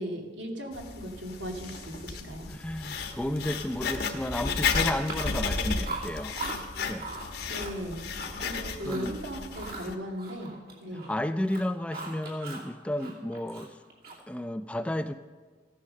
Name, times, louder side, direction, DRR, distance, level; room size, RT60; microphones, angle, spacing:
voice 1, 0.0-2.5 7.5-8.0 8.4-10.5 10.8-11.1, equal, 80° right, 2 dB, 2.2 m, -37 dB
Writing, 0.7-9.9, left 5 dB, 60° left, 1.2 m, -33 dB
voice 2, 2.5-6.4 6.9-7.1 8.9-9.1 10.9-13.8 14.3-15.1, left 1 dB, 5° left, 10 dB, 0.3 m, -32 dB
Chewing mastication, 5.0-5.6 5.8-6.6 7.0-7.3 7.6-8.5 8.8-9.1 9.5-11.2 11.4-12.7 13.0-14.4, right 3 dB, 55° right, 2.6 m, -40 dB
15.0 x 9.6 x 6.4 m, 1.5 s
head